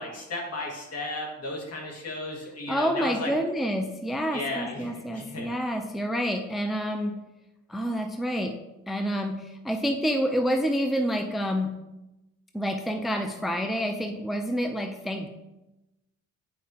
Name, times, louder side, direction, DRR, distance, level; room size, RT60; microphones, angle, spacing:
voice 1, 0.0-3.3 4.3-5.6, left 2 dB, 55° left, -1 dB, 2.1 m, -34 dB
voice 2, 2.7-7.2 7.7-8.6 8.9-11.8 12.5-15.3, equal, ahead, 4 dB, 0.5 m, -28 dB
9.3 x 4.7 x 2.9 m, 0.99 s
cardioid pair, 90°, 30 cm